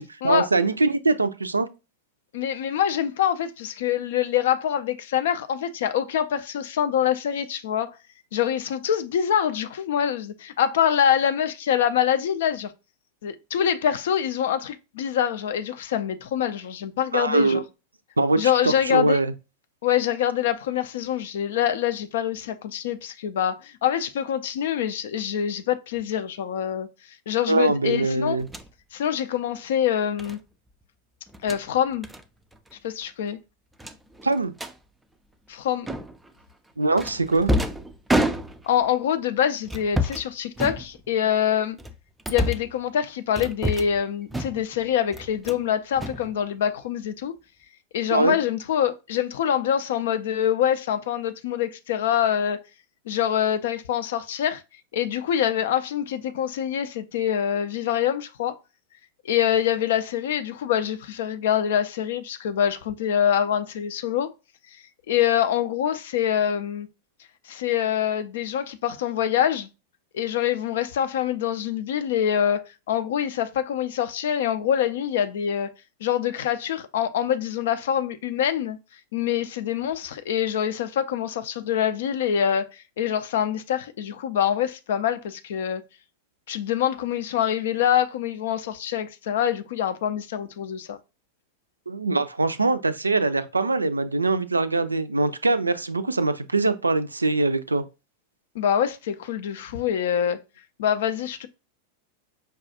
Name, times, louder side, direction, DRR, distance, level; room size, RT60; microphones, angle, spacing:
voice 1, 0.0-1.7 17.1-17.6 18.2-19.3 27.5-28.5 34.2-34.5 36.8-37.5 48.1-48.4 91.9-97.9, right 3 dB, 80° right, 0.3 m, -22 dB
voice 2, 2.3-8.0 8.3-12.7 13.2-17.6 18.4-19.2 19.8-26.9 27.3-28.4 28.9-30.4 31.4-32.1 32.8-33.4 35.5-35.9 38.6-41.8 42.3-47.3 47.9-52.6 53.1-54.6 54.9-58.6 59.2-64.3 65.1-66.9 67.5-69.7 70.1-75.7 76.0-78.8 79.1-85.8 86.5-91.0 98.5-100.4 100.8-101.5, left 9 dB, 55° left, 0.4 m, -25 dB
sound 1, 28.4-28.7 30.2-30.4 31.3-31.6 32.0-32.2 32.5-32.7 33.0-33.1 33.8-34.8 35.9-36.3 37.0-38.8 39.7-40.3 40.6-41.3 41.8-42.7 43.4-44.0 44.3-44.8 45.1-45.7 46.0-46.8, equal, 5° right, 0.4 m, -28 dB
5.3 x 2.3 x 2.7 m
figure-of-eight pair, 90°, 0 cm